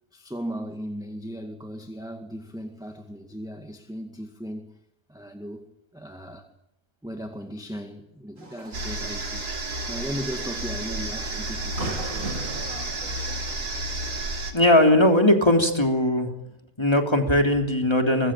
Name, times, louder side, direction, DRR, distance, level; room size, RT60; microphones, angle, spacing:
voice 1, 0.1-4.8 5.1-5.7 5.9-6.5 7.0-12.3, equal, ahead, 2.0 m, -37 dB
sound 1, 8.4-13.6, right 2 dB, 55° right, 3.5 m, -39 dB
sound 2, 8.7-14.5, right 2 dB, 90° right, 3.7 m, -31 dB
voice 2, 14.5-16.3 16.8-18.3, left 1 dB, 15° left, 3.3 m, -19 dB
24.5 x 21.5 x 9.0 m
omnidirectional pair, 1.7 m